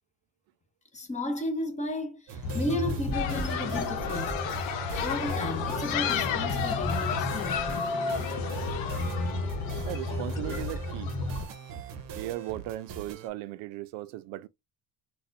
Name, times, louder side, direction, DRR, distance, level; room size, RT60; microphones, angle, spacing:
voice 1, 0.9-4.4 5.0-7.6, left 1 dB, 15° left, 0.8 m, -34 dB
sound 1, 2.3-13.3, right 7 dB, 50° right, 0.8 m, -42 dB
sound 2, 2.4-11.5, left 2 dB, 45° left, 1.1 m, -33 dB
sound 3, 3.1-11.1, left 8 dB, 75° left, 0.9 m, -33 dB
voice 2, 9.9-11.1 12.2-14.5, right 15 dB, 80° right, 0.5 m, -37 dB
4.1 x 2.3 x 2.5 m
cardioid pair, 120°, 44 cm